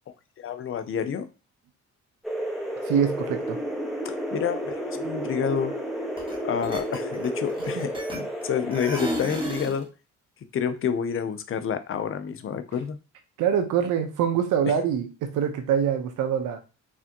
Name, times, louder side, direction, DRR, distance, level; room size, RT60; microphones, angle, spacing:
voice 1, 0.4-1.3 4.0-5.7 6.4-9.9 10.5-13.0 14.7-14.8, left 7 dB, 45° left, 10 dB, 0.6 m, -29 dB
sound 1, 2.2-9.2, equal, ahead, 1.3 m, -32 dB
voice 2, 2.9-3.6 13.4-16.6, right 8 dB, 85° right, 7 dB, 0.9 m, -24 dB
sound 2, 6.2-6.3 6.6-8.4 8.7-9.8, equal, 15° right, 1.6 m, -32 dB
4.8 x 3.4 x 2.9 m, 0.32 s
cardioid pair, 90°, 30 cm